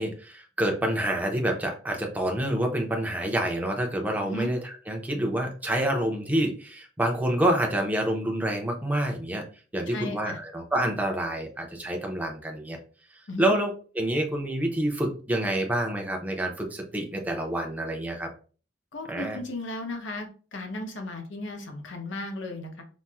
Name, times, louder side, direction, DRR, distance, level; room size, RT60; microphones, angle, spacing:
voice 1, 0.0-4.6 4.9-9.4 9.7-12.8 13.4-13.7 14.0-18.3 19.1-19.4, right 1 dB, 10° right, 2 dB, 0.5 m, -27 dB
voice 2, 9.9-10.4 13.3-13.6 18.9-22.8, left 1 dB, 85° left, 3 dB, 0.8 m, -35 dB
4.1 x 2.0 x 2.3 m, 0.38 s
head